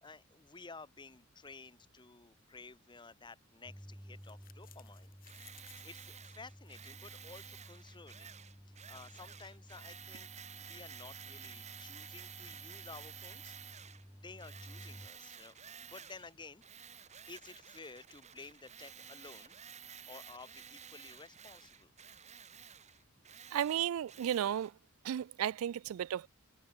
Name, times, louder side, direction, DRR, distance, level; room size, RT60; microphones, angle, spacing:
voice 1, 0.0-5.1 5.8-8.3 8.6-10.3 10.6-13.5 14.0-16.6 17.3-19.6 20.1-21.9, left 4 dB, 20° left, 1.2 m, -53 dB
sound 1, 3.6-15.1, equal, ahead, 0.5 m, -54 dB
sound 2, 4.2-9.7, left 11 dB, 45° left, 2.5 m, -65 dB
Tools, 5.3-14.0 14.4-16.3 16.6-24.7, right 8 dB, 35° right, 2.5 m, -52 dB
voice 2, 23.5-24.7 25.0-26.3, right 10 dB, 90° right, 0.3 m, -34 dB
head